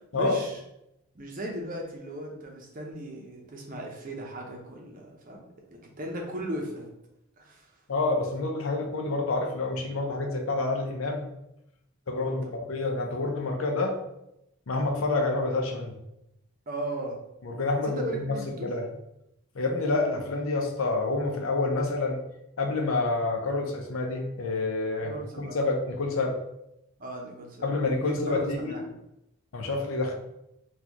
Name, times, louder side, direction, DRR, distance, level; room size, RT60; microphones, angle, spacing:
voice 1, 0.1-0.6 1.1-6.9 7.4-7.7 12.2-12.7 16.7-17.2 17.8-18.7 25.0-25.6 27.0-27.7 28.0-28.8, right 1 dB, 40° right, 0 dB, 0.7 m, -37 dB
voice 2, 7.9-11.3 12.1-14.0 14.7-15.9 17.4-18.9 19.5-22.3 22.6-26.4 27.6-28.8 29.5-30.1, left 3 dB, 70° left, 2 dB, 0.6 m, -28 dB
4.3 x 2.4 x 2.9 m, 0.85 s
head